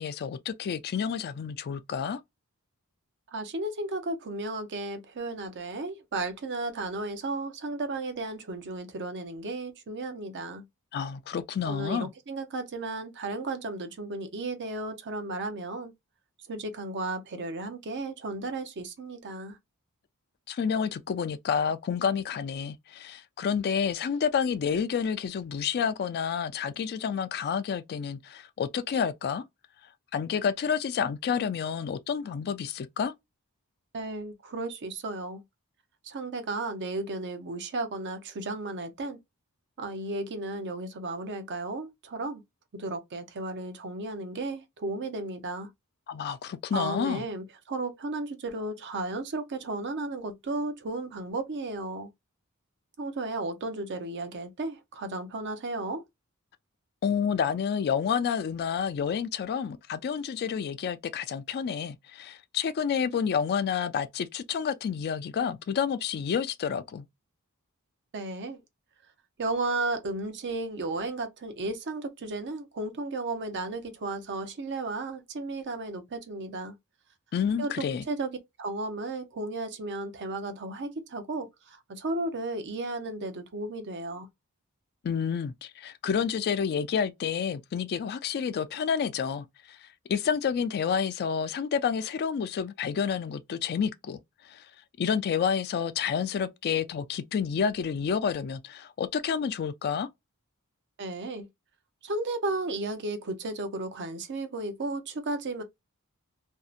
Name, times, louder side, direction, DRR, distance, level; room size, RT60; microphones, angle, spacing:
voice 1, 0.0-2.2 10.9-12.1 20.5-29.4 30.1-33.1 46.1-47.2 57.0-67.1 77.3-78.0 85.0-94.2 94.4-94.7 95.0-100.1, left 7 dB, 45° left, 0.3 m, -29 dB
voice 2, 3.3-10.6 11.6-15.9 16.5-19.6 33.9-35.4 36.0-39.2 39.8-42.4 42.7-45.7 46.7-52.1 53.0-56.0 68.1-68.6 69.4-76.7 77.6-84.3 101.0-101.5 102.0-105.6, right 2 dB, 50° right, 0.6 m, -34 dB
2.6 x 2.1 x 2.4 m
head